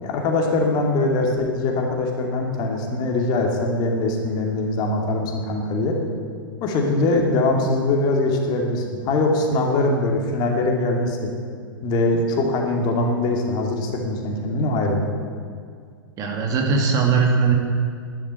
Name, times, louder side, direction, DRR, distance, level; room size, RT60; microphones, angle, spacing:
voice 1, 0.0-6.0 6.6-11.3 11.8-15.0, left 2 dB, 35° left, 1 dB, 2.5 m, -22 dB
voice 2, 16.2-17.5, right 5 dB, 30° right, 2 dB, 2.4 m, -19 dB
12.0 x 11.0 x 8.2 m, 2.2 s
figure-of-eight pair, 100°, 12 cm